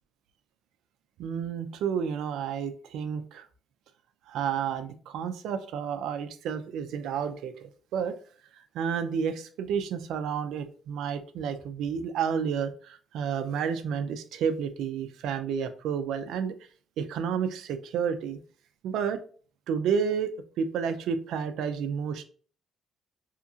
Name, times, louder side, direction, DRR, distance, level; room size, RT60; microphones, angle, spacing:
voice 1, 1.2-3.5 4.3-8.2 8.7-16.5 17.0-18.4 18.8-19.2 19.7-22.2, right 7 dB, 85° right, 9 dB, 0.3 m, -31 dB
2.8 x 2.6 x 2.4 m, 0.42 s
cardioid pair, 145°, 0 cm